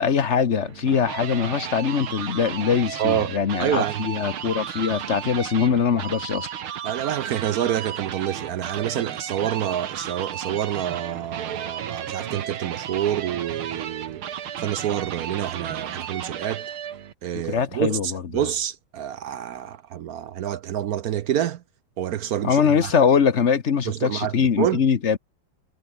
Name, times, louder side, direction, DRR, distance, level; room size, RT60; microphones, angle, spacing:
voice 1, 0.0-6.5 17.5-18.2 22.4-25.2, left 6 dB, 45° left, 1.1 m, -22 dB
sound 1, 0.6-17.1, right 9 dB, 85° right, 2.3 m, -34 dB
voice 2, 3.0-4.0 6.8-14.2 14.6-16.7 17.2-21.6 22.0-22.9 23.9-24.8, right 10 dB, 65° right, 0.9 m, -27 dB
omnidirectional pair, 2.3 m